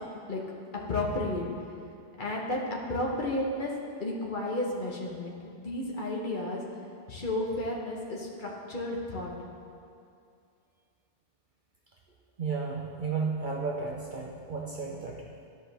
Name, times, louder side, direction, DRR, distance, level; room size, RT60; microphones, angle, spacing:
voice 1, 0.9-1.4 2.2-2.6 2.9-3.7 4.0-6.6 7.1-9.3, left 1 dB, 45° left, -2 dB, 1.3 m, -32 dB
voice 2, 12.4-15.2, right 4 dB, 50° right, -2 dB, 0.8 m, -33 dB
12.5 x 5.2 x 3.4 m, 2.5 s
omnidirectional pair, 1.2 m